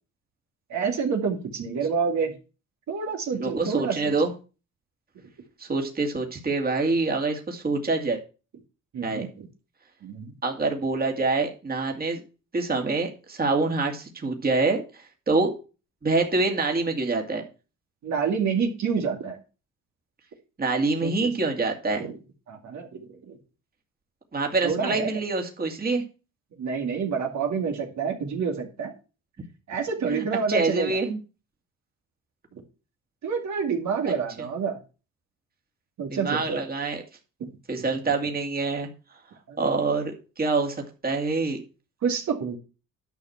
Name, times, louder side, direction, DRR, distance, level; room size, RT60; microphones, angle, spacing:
voice 1, 0.7-2.3 2.9-3.9 8.9-9.5 10.0-10.3 18.0-19.4 21.0-21.3 22.0-22.1 22.5-23.3 24.6-25.1 26.6-28.9 29.7-31.0 33.2-34.8 36.0-36.6 37.4-37.5 39.5-39.6 42.0-42.6, right 6 dB, 70° right, 2 dB, 2.4 m, -28 dB
voice 2, 3.3-4.3 5.6-8.2 9.0-9.3 10.4-12.2 12.5-15.5 16.0-17.4 20.6-22.1 24.3-26.0 30.1-31.2 34.1-34.2 36.1-37.0 37.7-38.9 39.6-40.8 41.0-41.6, right 3 dB, 30° right, 3 dB, 2.4 m, -26 dB
10.5 x 5.9 x 5.9 m, 0.33 s
cardioid pair, 90°, 30 cm